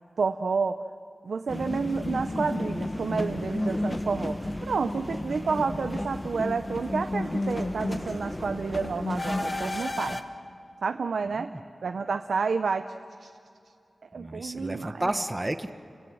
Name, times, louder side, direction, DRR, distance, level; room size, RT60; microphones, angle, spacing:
voice 1, 0.2-0.8 1.2-10.2 10.8-11.5 11.8-12.9 13.2-13.3 14.0-15.1, right 5 dB, 85° right, 8 dB, 0.6 m, -30 dB
sound 1, 1.5-10.2, left 1 dB, 25° left, 1.3 m, -32 dB
voice 2, 14.2-15.7, right 1 dB, 20° right, 9 dB, 1.0 m, -31 dB
29.5 x 17.0 x 7.7 m, 2.6 s
wide cardioid pair, 65°, 0 cm